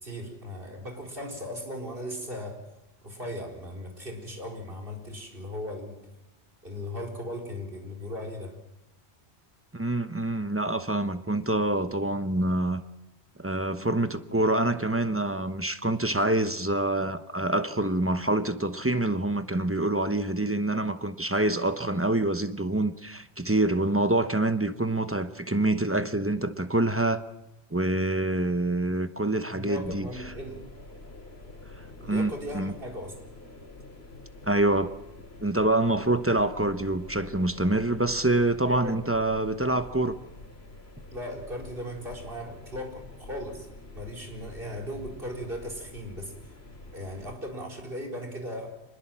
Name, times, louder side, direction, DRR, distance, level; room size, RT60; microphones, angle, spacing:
voice 1, 0.0-2.6 3.0-6.0 6.6-8.6 29.5-30.6 32.0-33.2 38.6-39.0 41.1-43.7 43.9-46.3 46.9-48.8, equal, 60° right, 1 dB, 4.5 m, -37 dB
voice 2, 9.7-12.8 13.4-27.2 27.7-30.1 32.0-32.7 34.4-34.9 35.4-40.2, right 1 dB, 15° right, 10 dB, 0.9 m, -26 dB
sound 1, 29.8-47.4, left 2 dB, 70° left, 2.9 m, -47 dB
25.0 x 21.0 x 7.5 m, 0.92 s
omnidirectional pair, 1.1 m